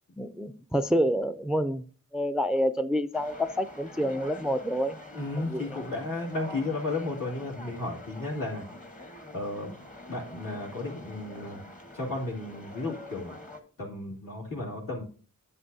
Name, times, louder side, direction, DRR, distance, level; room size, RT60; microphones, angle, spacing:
voice 1, 0.2-1.8 2.1-5.0 5.4-5.8, equal, ahead, 11 dB, 0.3 m, -28 dB
sound 1, 3.1-13.6, left 2 dB, 25° left, 1.1 m, -45 dB
voice 2, 5.1-8.6 9.3-9.8 10.1-11.6 11.9-13.3 13.8-15.0, left 2 dB, 75° left, -3 dB, 2.5 m, -33 dB
9.7 x 7.5 x 2.7 m, 0.42 s
wide cardioid pair, 55°, 34 cm